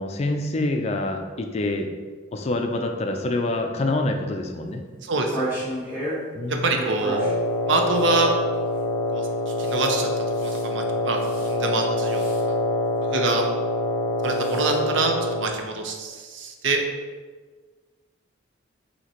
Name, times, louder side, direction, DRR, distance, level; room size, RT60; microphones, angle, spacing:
voice 1, 0.0-1.9 2.3-4.8 6.3-6.8, left 2 dB, 35° left, 4 dB, 0.3 m, -26 dB
voice 2, 5.0-5.6 6.5-7.2 7.7-8.3 9.1-12.2 12.5-12.6 13.1-13.5 14.2-16.8, right 3 dB, 70° right, 3 dB, 0.6 m, -26 dB
sound 1, 5.1-6.2 6.7-7.3 7.9-8.1 9.6-9.9 10.3-10.6 11.2-11.5 12.1-12.4 14.2-14.7, right 1 dB, 10° right, 1.2 m, -32 dB
Wind instrument woodwind instrument, 7.0-15.6, left 1 dB, 15° left, 1.0 m, -25 dB
5.8 x 2.8 x 2.9 m, 1.5 s
head